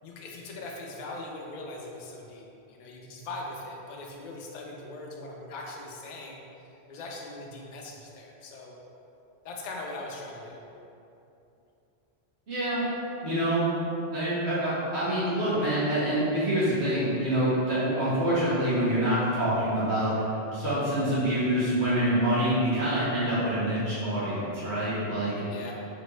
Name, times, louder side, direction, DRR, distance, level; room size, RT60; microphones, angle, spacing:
voice 1, 0.0-6.4 6.9-8.7 9.4-10.6 25.5-25.7, left 2 dB, 55° left, -1 dB, 0.5 m, -40 dB
voice 2, 12.5-12.8 13.2-13.6 14.1-20.1 20.5-25.4, right 1 dB, 70° right, -11 dB, 1.4 m, -26 dB
4.2 x 2.9 x 3.1 m, 2.8 s
omnidirectional pair, 1.1 m